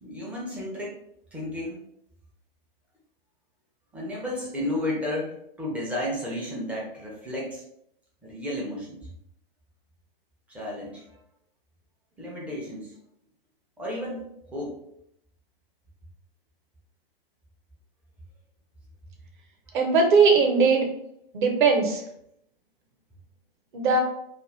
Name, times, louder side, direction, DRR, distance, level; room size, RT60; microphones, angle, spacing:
voice 1, 0.0-1.0 1.3-1.8 3.9-7.6 8.2-9.0 10.5-11.0 12.2-12.9 13.8-14.8 19.7-19.9, left 1 dB, 5° right, -4 dB, 0.4 m, -33 dB
voice 2, 19.7-20.9 21.3-22.0 23.7-24.0, right 4 dB, 55° right, 3 dB, 0.8 m, -19 dB
2.4 x 2.3 x 3.1 m, 0.74 s
figure-of-eight pair, 115°, 30 cm